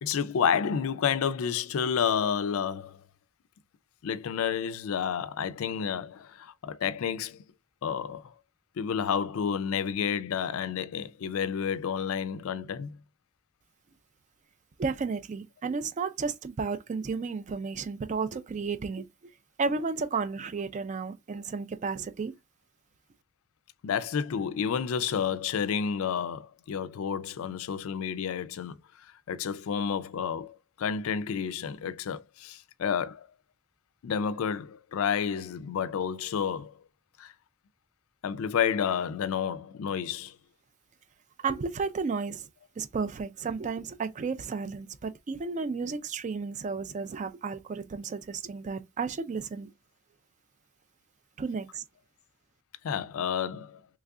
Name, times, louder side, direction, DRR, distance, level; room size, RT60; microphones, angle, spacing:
voice 1, 0.0-3.0 4.0-7.4 7.8-8.3 8.8-13.0 23.8-33.3 34.0-36.8 37.2-37.3 38.2-40.4 52.8-53.8, left 7 dB, 65° left, 0.3 m, -30 dB
voice 2, 14.8-19.1 19.6-22.3 41.4-42.4 42.8-49.7 51.4-51.8, right 4 dB, 35° right, 0.3 m, -33 dB
3.2 x 2.3 x 3.6 m
head